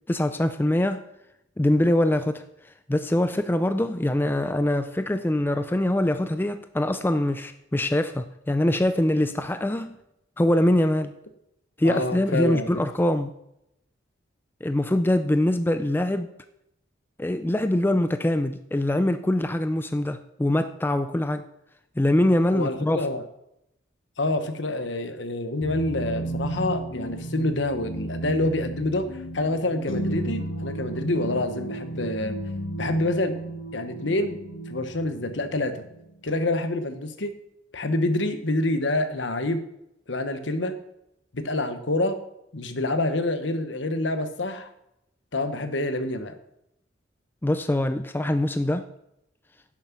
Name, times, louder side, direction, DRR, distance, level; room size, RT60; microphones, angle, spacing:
voice 1, 0.1-1.0 1.6-2.4 2.9-10.0 10.4-11.1 11.8-13.3 14.6-16.3 17.2-21.4 22.0-23.1 47.4-48.9, left 1 dB, 10° left, 9 dB, 0.4 m, -23 dB
voice 2, 11.8-12.8 22.5-23.2 24.2-32.4 32.8-33.3 33.7-34.4 34.7-35.8 36.2-37.4 37.7-39.6 40.1-40.7 41.3-42.2 42.5-44.7 45.3-46.3, left 2 dB, 65° left, 9 dB, 1.1 m, -27 dB
sound 1, 25.6-36.3, right 1 dB, 85° left, 1.3 m, -33 dB
11.0 x 7.4 x 6.0 m, 0.82 s
head